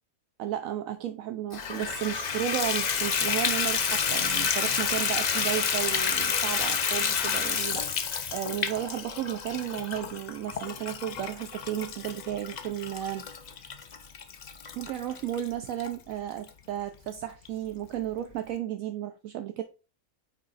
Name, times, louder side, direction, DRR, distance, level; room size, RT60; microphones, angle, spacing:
voice 1, 0.4-13.2 13.5-13.6 14.7-19.6, right 11 dB, 75° right, 1.0 m, -33 dB
Water tap faucet / Bathtub (filling or washing), 1.5-15.9 16.5-16.6 17.1-17.2 17.4-17.5, left 6 dB, 60° left, 0.4 m, -30 dB
8.6 x 3.1 x 4.0 m
omnidirectional pair, 1.5 m